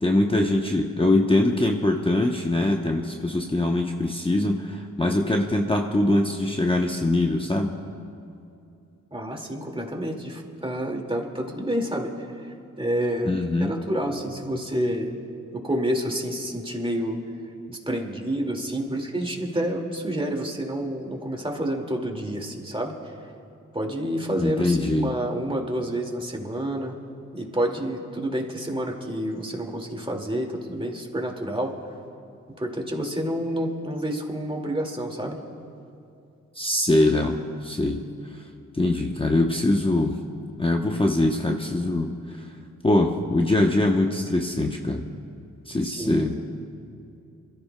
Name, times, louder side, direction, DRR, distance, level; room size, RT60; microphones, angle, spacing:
voice 1, 0.0-7.7 13.3-13.7 24.4-25.1 36.5-38.0 38.7-40.2 40.6-42.4 42.8-45.0 45.7-46.4, left 2 dB, 15° left, 2 dB, 0.9 m, -23 dB
voice 2, 9.1-12.1 12.4-13.4 13.6-15.1 15.5-17.2 17.7-22.9 23.7-26.9 27.3-31.7 32.6-35.4 45.8-46.4, right 1 dB, 15° right, 1 dB, 2.2 m, -29 dB
27.5 x 14.0 x 2.3 m, 2.6 s
cardioid pair, 50°, 33 cm